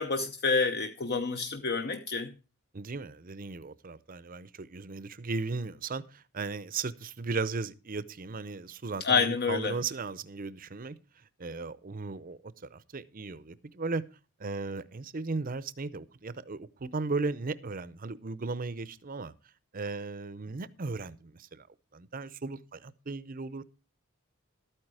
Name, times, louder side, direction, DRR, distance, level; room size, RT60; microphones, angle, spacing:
voice 1, 0.0-2.3 9.0-9.8, left 4 dB, 45° left, 0.8 m, -28 dB
voice 2, 2.7-11.0 11.4-14.0 14.4-19.3 19.7-21.7 21.9-23.6, right 3 dB, 40° right, 0.7 m, -36 dB
12.5 x 9.0 x 4.8 m
head